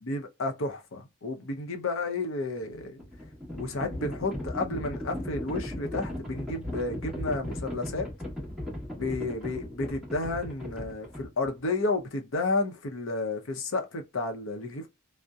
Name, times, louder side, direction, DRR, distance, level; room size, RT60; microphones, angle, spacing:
voice 1, 0.0-3.0 3.6-8.1 9.0-14.9, left 2 dB, 65° left, 0.6 m, -31 dB
Livestock farm animals working animals, 2.7-11.7, left 1 dB, ahead, 1.1 m, -37 dB
2.7 x 2.0 x 2.2 m
head